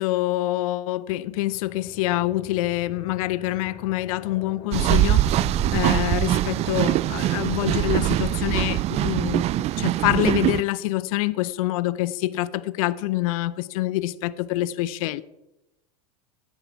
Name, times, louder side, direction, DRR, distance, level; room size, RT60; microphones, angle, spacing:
voice 1, 0.0-5.4 5.7-15.2, left 16 dB, 65° left, 0.8 m, -26 dB
sound 1, 1.2-8.6, left 6 dB, 35° left, 4.0 m, -42 dB
sound 2, 4.7-10.6, right 15 dB, 35° right, 0.4 m, -22 dB
17.0 x 8.8 x 4.6 m
hypercardioid pair, 90°, 19 cm